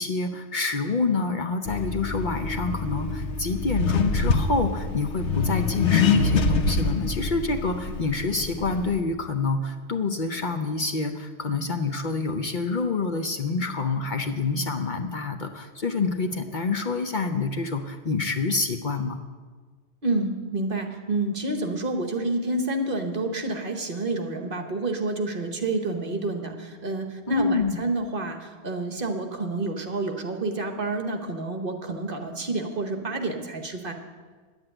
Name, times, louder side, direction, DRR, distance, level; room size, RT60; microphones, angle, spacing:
voice 1, 0.0-19.2 27.3-27.8, left 3 dB, 50° left, 5 dB, 0.8 m, -27 dB
Accelerating revving vroom, 1.7-9.0, left 4 dB, 85° left, 1.2 m, -25 dB
voice 2, 20.0-33.9, right 2 dB, 50° right, 5 dB, 1.3 m, -29 dB
10.5 x 7.9 x 8.8 m, 1.5 s
omnidirectional pair, 1.2 m